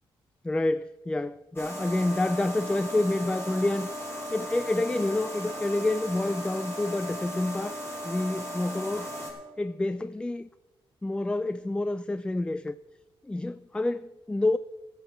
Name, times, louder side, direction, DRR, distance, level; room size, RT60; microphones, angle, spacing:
voice 1, 0.4-3.9 4.3-7.8 8.0-9.1 9.6-10.5 11.0-12.8 13.2-14.6, left 2 dB, 10° left, 0.3 m, -28 dB
sound 1, 1.6-9.3, equal, 25° left, 5.2 m, -37 dB
13.5 x 8.0 x 7.3 m
cardioid pair, 95°, 10 cm